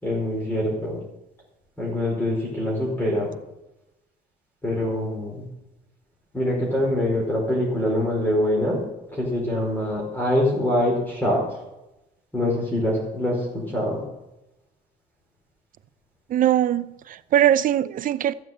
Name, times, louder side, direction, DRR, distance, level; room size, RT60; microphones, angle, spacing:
voice 1, 0.0-1.0 1.8-3.3 4.6-5.4 6.3-8.8 9.1-11.4 12.3-14.0, left 1 dB, 10° left, 4.9 m, -24 dB
voice 2, 16.3-18.3, right 11 dB, 55° right, 0.6 m, -21 dB
14.0 x 7.5 x 7.9 m
cardioid pair, 110°, 17 cm